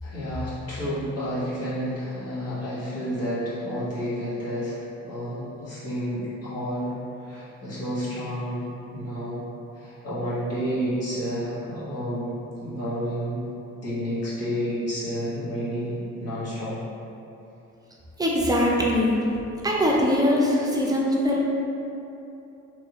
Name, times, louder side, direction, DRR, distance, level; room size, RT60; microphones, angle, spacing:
voice 1, 0.0-4.8 5.0-6.9 7.3-9.4 9.8-12.3 12.6-13.4 13.8-16.8, equal, 55° left, -11 dB, 1.4 m, -30 dB
voice 2, 18.2-19.2 19.6-21.5, left 1 dB, 15° right, -3 dB, 0.5 m, -22 dB
3.3 x 2.6 x 3.0 m, 2.9 s
cardioid pair, 90°, 30 cm